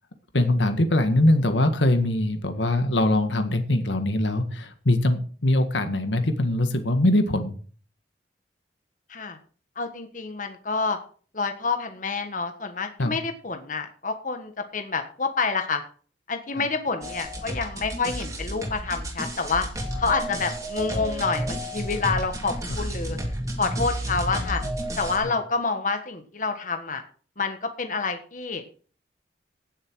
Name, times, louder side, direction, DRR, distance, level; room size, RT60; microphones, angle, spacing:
voice 1, 0.3-7.5 13.0-13.2 25.2-25.3, left 1 dB, 80° left, 8 dB, 1.8 m, -22 dB
voice 2, 9.8-11.0 11.3-15.8 16.3-19.7 20.0-23.2 23.6-24.6 25.0-27.0 27.4-28.6, left 4 dB, 45° left, 6 dB, 1.5 m, -28 dB
sound 1, 17.0-25.2, equal, 20° right, 2.6 m, -31 dB
17.0 x 7.4 x 4.7 m, 0.41 s
head